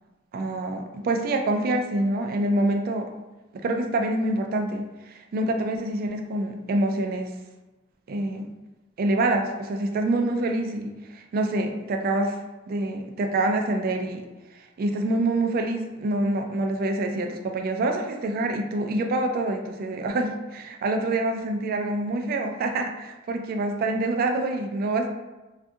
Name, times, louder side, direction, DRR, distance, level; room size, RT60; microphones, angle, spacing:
voice 1, 0.3-3.1 3.6-7.3 8.1-8.5 9.0-12.4 12.7-14.2 14.5-25.1, right 2 dB, 50° right, 4 dB, 0.3 m, -26 dB
2.5 x 2.4 x 2.6 m, 1.1 s
head